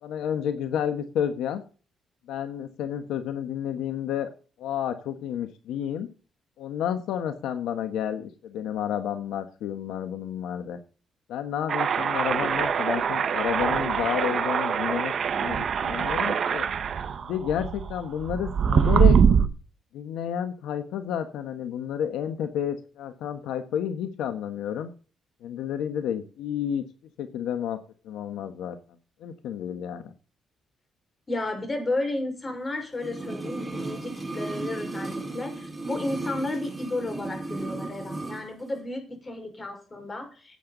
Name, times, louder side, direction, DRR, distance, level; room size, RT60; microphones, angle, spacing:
voice 1, 0.0-1.6 2.3-4.3 4.6-6.1 6.6-10.8 11.3-16.6 17.2-19.2 19.9-24.9 25.4-26.8 27.2-27.8 28.0-28.8 29.2-30.1, left 9 dB, 85° left, 8 dB, 1.3 m, -30 dB
sound 1, 11.7-19.5, right 7 dB, 50° right, 1.3 m, -23 dB
voice 2, 31.3-40.6, left 2 dB, 25° left, 5 dB, 5.2 m, -32 dB
sound 2, 33.0-38.5 38.7-38.8, right 2 dB, 15° right, 4.8 m, -35 dB
16.0 x 8.8 x 4.0 m, 0.37 s
cardioid pair, 90°, 0 cm